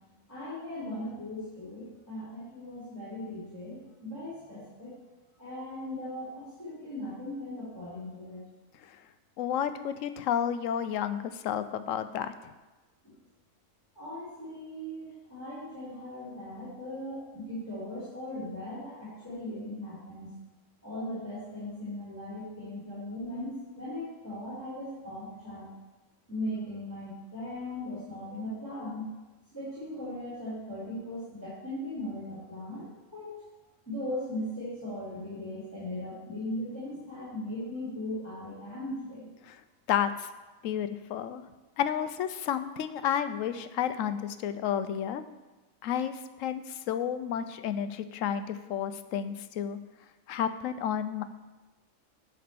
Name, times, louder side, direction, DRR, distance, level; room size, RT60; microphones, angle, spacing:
voice 1, 0.3-5.0 5.4-8.4 13.9-20.3 20.8-25.7 26.3-29.0 29.5-33.4 33.9-39.3, left 1 dB, 10° left, -11 dB, 3.1 m, -38 dB
voice 2, 9.4-12.5 39.4-39.6 39.9-40.3 40.6-41.4 41.8-45.2 45.8-49.8 50.3-51.2, left 9 dB, 75° left, 11 dB, 0.9 m, -31 dB
11.0 x 4.3 x 6.8 m, 1.2 s
omnidirectional pair, 1.4 m